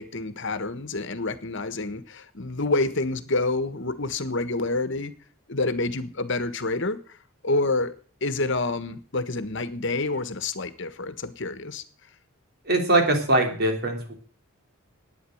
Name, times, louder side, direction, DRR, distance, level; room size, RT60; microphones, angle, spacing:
voice 1, 0.0-5.1 5.5-7.0 7.4-7.9 8.2-11.8, left 2 dB, 60° left, 12 dB, 1.4 m, -28 dB
voice 2, 12.7-14.1, right 2 dB, 50° right, 3 dB, 3.4 m, -22 dB
12.0 x 9.5 x 7.9 m, 0.43 s
head